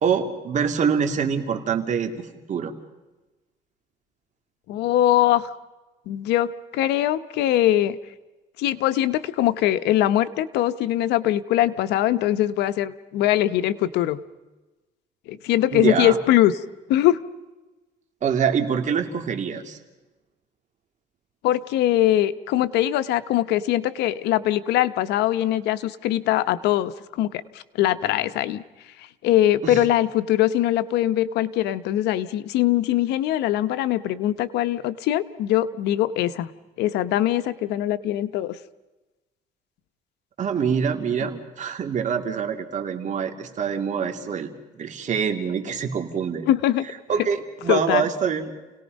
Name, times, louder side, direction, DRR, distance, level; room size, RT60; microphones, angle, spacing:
voice 1, 0.0-2.7 15.7-16.2 18.2-19.8 29.6-29.8 40.4-46.5 47.1-48.5, right 7 dB, 45° right, 5 dB, 2.6 m, -25 dB
voice 2, 4.7-5.5 6.1-8.0 8.6-14.2 15.3-16.5 16.9-17.2 21.4-27.4 27.7-28.6 29.2-36.5 36.8-38.6 46.5-46.8 47.7-48.0, left 13 dB, 85° left, 13 dB, 0.9 m, -22 dB
29.5 x 18.5 x 5.3 m, 1.1 s
cardioid pair, 110°, 17 cm